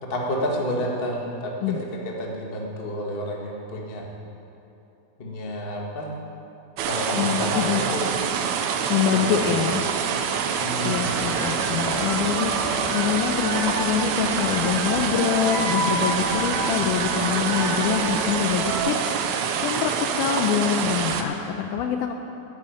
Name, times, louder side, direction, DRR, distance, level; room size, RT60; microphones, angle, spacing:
voice 1, 0.0-4.0 5.2-6.1 6.8-8.1 9.1-9.6 10.6-11.1, equal, 50° left, -1 dB, 0.6 m, -30 dB
sound 1, 6.8-21.2, right 7 dB, 80° right, 1.6 m, -26 dB
voice 2, 7.2-7.8 8.9-9.8 10.3-10.4 10.8-22.1, left 8 dB, 80° left, 5 dB, 1.9 m, -25 dB
sound 2, 10.8-18.8, right 1 dB, 45° right, 3.3 m, -31 dB
10.0 x 9.6 x 9.1 m, 2.9 s
omnidirectional pair, 4.1 m